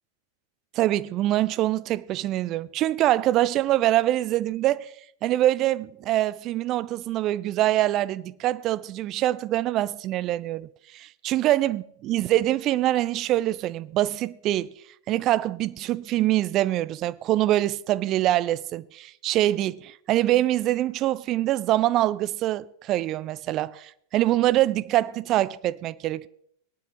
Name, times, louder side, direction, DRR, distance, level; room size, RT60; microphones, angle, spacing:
voice 1, 0.7-4.9 5.2-10.7 10.9-14.7 15.1-26.3, right 14 dB, 35° right, 0.4 m, -24 dB
18.0 x 9.9 x 3.0 m
figure-of-eight pair, 90°, 0 cm